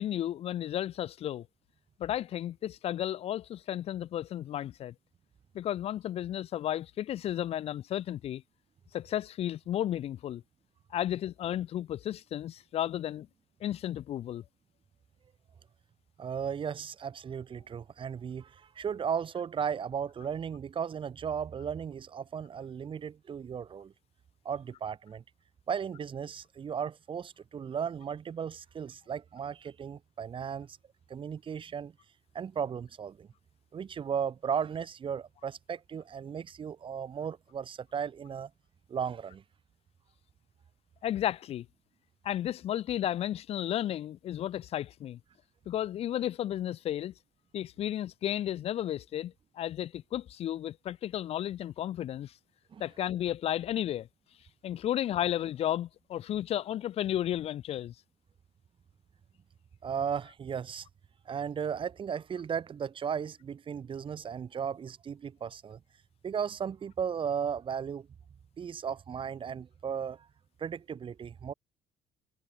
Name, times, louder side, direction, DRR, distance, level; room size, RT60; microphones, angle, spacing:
voice 1, 0.0-1.5 2.0-4.9 5.5-8.4 8.9-10.4 10.9-13.3 13.6-14.4 41.0-41.7 42.2-45.2 45.7-47.1 47.5-52.3 52.8-54.1 54.6-57.9, left 11 dB, 50° left, 0.4 m, -33 dB
voice 2, 16.2-23.9 24.4-25.2 25.7-30.8 31.1-31.9 32.3-33.3 33.7-38.5 38.9-39.4 52.7-52.8 59.8-60.9 61.2-65.8 66.2-68.1 68.6-70.3 70.6-71.5, right 7 dB, 40° right, 1.5 m, -35 dB
cardioid pair, 105°, 13 cm